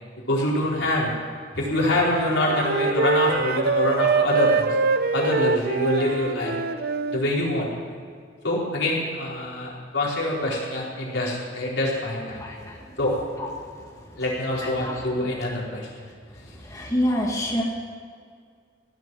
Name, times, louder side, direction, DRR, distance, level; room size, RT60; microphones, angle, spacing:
voice 1, 0.3-1.1 1.6-4.7 5.1-6.5 7.1-7.7 8.4-12.4 13.0-13.2 14.2-15.9, left 1 dB, 85° left, -5 dB, 4.6 m, -25 dB
Wind instrument woodwind instrument, 1.7-7.2, right 4 dB, 55° right, 0.7 m, -24 dB
voice 2, 12.4-13.0 13.4-13.5 14.6-15.1 16.6-17.6, equal, 20° left, -2 dB, 1.8 m, -27 dB
16.5 x 7.7 x 9.8 m, 2.1 s
head